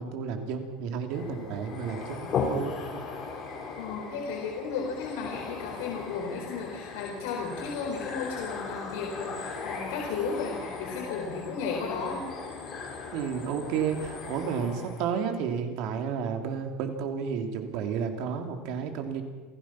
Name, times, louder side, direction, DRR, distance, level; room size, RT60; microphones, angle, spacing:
voice 1, 0.0-3.0 13.1-19.2, right 6 dB, 60° right, 5 dB, 3.1 m, -32 dB
sound 1, 1.1-15.1, left 4 dB, 35° left, 5.1 m, -37 dB
voice 2, 3.8-12.3, left 5 dB, 80° left, -1 dB, 4.3 m, -34 dB
28.0 x 16.0 x 6.1 m, 1.3 s
cardioid pair, 155°, 0 cm